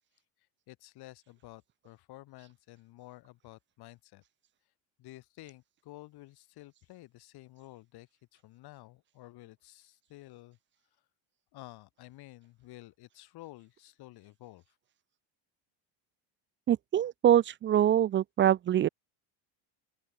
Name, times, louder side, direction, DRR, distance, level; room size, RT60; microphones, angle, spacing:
voice 1, 0.7-4.2 5.0-10.6 11.5-14.8, left 18 dB, 55° left, 6.9 m, -52 dB
voice 2, 16.7-18.9, right 11 dB, 25° right, 0.6 m, -24 dB
open air
cardioid pair, 155°, 45 cm